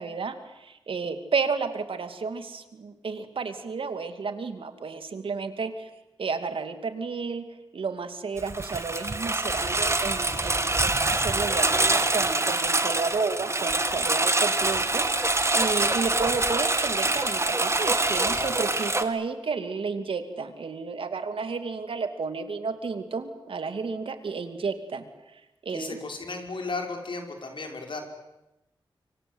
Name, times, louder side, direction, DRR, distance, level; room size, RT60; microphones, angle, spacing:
voice 1, 0.0-5.9 6.2-7.4 7.7-26.0, right 4 dB, 80° right, 8 dB, 2.5 m, -32 dB
Engine, 8.4-19.0, right 2 dB, 30° right, 2.2 m, -25 dB
voice 2, 25.7-28.0, left 3 dB, 70° left, 3 dB, 5.5 m, -35 dB
26.0 x 25.0 x 8.1 m, 0.95 s
cardioid pair, 60°, 9 cm